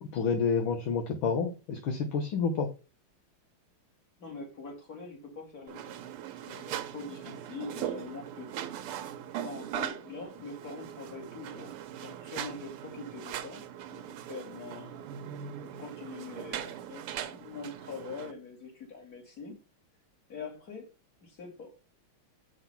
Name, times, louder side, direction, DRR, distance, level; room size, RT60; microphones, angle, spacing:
voice 1, 0.0-2.7, left 5 dB, 70° left, 6 dB, 1.8 m, -29 dB
voice 2, 4.2-6.0 6.5-8.7 9.4-13.6 13.9-15.0 15.6-19.6 20.3-20.9 21.2-21.7, left 4 dB, 40° left, 1 dB, 3.4 m, -44 dB
sound 1, 5.7-18.3, right 10 dB, 85° right, 1.7 m, -40 dB
7.6 x 6.1 x 5.7 m, 0.31 s
omnidirectional pair, 2.4 m